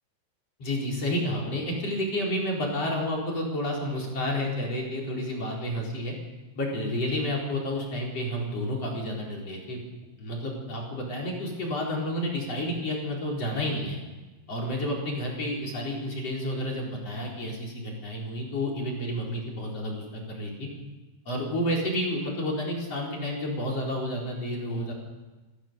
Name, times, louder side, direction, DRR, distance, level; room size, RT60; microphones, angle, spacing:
voice 1, 0.6-6.2 6.6-9.8 10.2-14.0 14.5-20.7 21.3-24.9, left 1 dB, 35° left, -2 dB, 5.1 m, -30 dB
28.5 x 14.5 x 7.0 m, 1.2 s
omnidirectional pair, 5.5 m